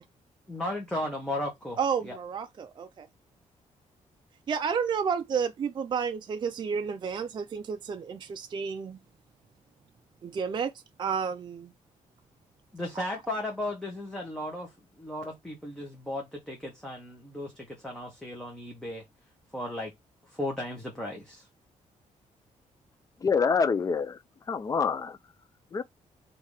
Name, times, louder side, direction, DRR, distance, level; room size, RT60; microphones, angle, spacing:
voice 1, 0.5-1.8 2.0-2.2 12.7-14.7 15.0-19.0 19.5-19.9 20.3-21.5, left 1 dB, 5° left, 1.1 m, -35 dB
voice 2, 1.8-3.1 4.5-9.0 10.2-10.7 11.0-11.7 13.0-13.1, right 6 dB, 35° right, 0.4 m, -31 dB
voice 3, 23.2-24.2 24.5-25.2 25.7-25.8, left 5 dB, 25° left, 0.4 m, -26 dB
3.5 x 2.8 x 4.7 m
wide cardioid pair, 150°, 13 cm